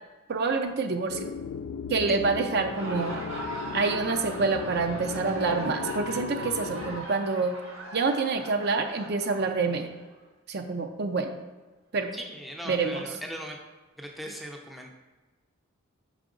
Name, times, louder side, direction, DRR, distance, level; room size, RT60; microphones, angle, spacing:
voice 1, 0.3-1.3 1.9-3.2 3.7-7.5 7.9-9.9 10.5-11.3 11.9-12.1 12.7-13.0, right 4 dB, 50° right, 6 dB, 0.5 m, -27 dB
sound 1, 1.1-7.0, left 7 dB, 75° left, 0.3 m, -37 dB
Laughter, 2.4-10.1, right 1 dB, 75° right, 1.7 m, -39 dB
voice 2, 12.1-13.6 14.0-14.9, equal, ahead, 0 dB, 0.5 m, -39 dB
5.5 x 4.9 x 3.7 m, 1.2 s
head